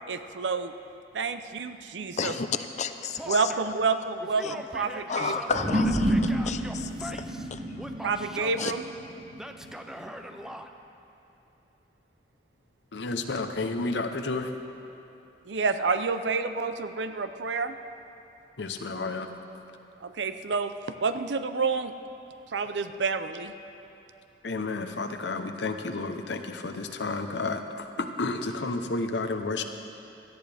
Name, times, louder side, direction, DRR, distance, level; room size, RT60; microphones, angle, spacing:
voice 1, 0.1-0.7 1.1-2.3 3.3-5.3 8.0-8.8 15.5-17.8 20.0-20.7 21.0-21.9 22.5-23.5, right 4 dB, 85° right, 10 dB, 0.6 m, -29 dB
voice 2, 2.2-3.4 4.4-4.5 5.1-7.6 8.6-8.7, left 5 dB, 40° left, 9 dB, 0.6 m, -32 dB
Male speech man speaking / Yell, 3.2-3.8 4.2-7.5 7.8-8.7 9.4-10.7, equal, 5° right, 0.5 m, -41 dB
sound 1, 5.5-10.2, equal, 50° right, 2.2 m, -29 dB
voice 3, 12.9-14.5 18.6-19.3 24.4-29.6, left 3 dB, 75° left, 6 dB, 0.8 m, -31 dB
17.0 x 14.0 x 3.4 m, 2.8 s
head